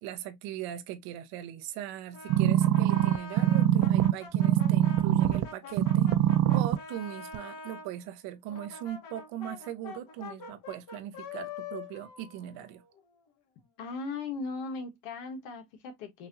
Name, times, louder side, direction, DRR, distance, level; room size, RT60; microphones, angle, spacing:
voice 1, 0.0-6.1 6.5-12.8, right 11 dB, 85° right, 1.0 m, -39 dB
Brass instrument, 2.1-7.9 8.5-13.2, left 5 dB, 65° left, 2.1 m, -45 dB
sound 1, 2.3-5.5 5.8-6.8 7.3-7.4, right 12 dB, 65° right, 0.6 m, -23 dB
voice 2, 13.8-16.3, left 4 dB, 90° left, 1.6 m, -38 dB
5.9 x 2.8 x 2.6 m
supercardioid pair, 95°, 36 cm